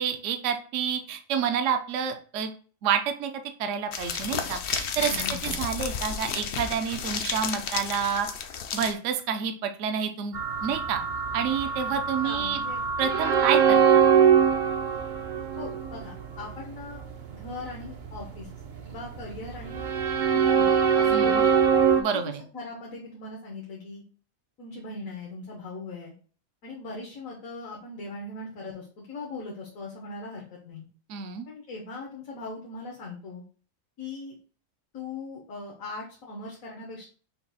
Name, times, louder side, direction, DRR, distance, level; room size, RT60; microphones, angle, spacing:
voice 1, 0.0-2.5 2.8-3.3 3.6-5.1 5.4-8.3 8.7-10.3 10.6-11.0 11.3-12.6 13.0-13.8 21.1-21.4 22.0-22.4 31.1-31.5, right 7 dB, 70° right, 7 dB, 0.9 m, -28 dB
sound 1, 3.9-8.9, left 7 dB, 65° left, 0.8 m, -32 dB
voice 2, 4.9-5.6 12.2-12.8 15.6-17.0 17.3-18.5 18.8-19.9 20.3-21.5 22.1-24.0 24.6-26.1 26.6-30.9 31.5-33.4 34.0-34.3 34.9-37.0, left 3 dB, 80° left, -3 dB, 1.4 m, -40 dB
sound 2, 10.3-22.0, right 7 dB, 55° right, 0.5 m, -23 dB
5.8 x 2.3 x 4.0 m, 0.40 s
omnidirectional pair, 1.4 m